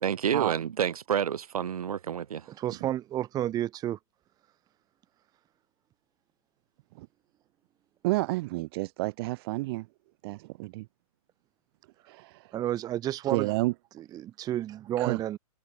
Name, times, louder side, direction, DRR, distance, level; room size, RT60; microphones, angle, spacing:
voice 1, 0.0-2.5, right 8 dB, 75° right, 2.1 m, -29 dB
voice 2, 2.6-4.0 12.5-13.5 14.0-15.4, right 12 dB, 20° right, 1.1 m, -31 dB
voice 3, 8.0-9.9 10.2-10.9 12.1-12.5 13.3-13.7 15.0-15.2, right 21 dB, 40° right, 1.0 m, -30 dB
hypercardioid pair, 130°, 19 cm